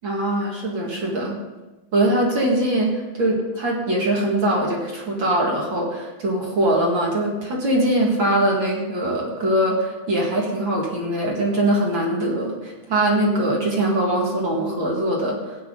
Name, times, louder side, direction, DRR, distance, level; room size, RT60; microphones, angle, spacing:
voice 1, 0.0-1.4 1.9-15.6, right 1 dB, 40° right, -2 dB, 2.2 m, -22 dB
16.5 x 10.0 x 3.9 m, 1.1 s
omnidirectional pair, 4.5 m